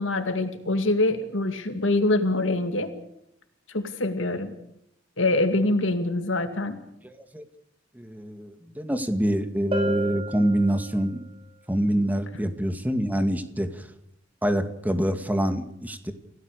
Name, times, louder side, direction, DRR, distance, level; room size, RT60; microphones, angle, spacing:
voice 1, 0.0-2.9 3.7-4.5 5.2-6.8, left 2 dB, 80° left, 7 dB, 2.3 m, -24 dB
voice 2, 7.0-7.4 8.0-11.2 11.7-13.8 14.4-16.1, right 1 dB, 10° right, 8 dB, 2.1 m, -26 dB
Bell, 9.7-11.3, equal, 30° right, 5.2 m, -33 dB
28.5 x 17.0 x 6.8 m, 0.75 s
head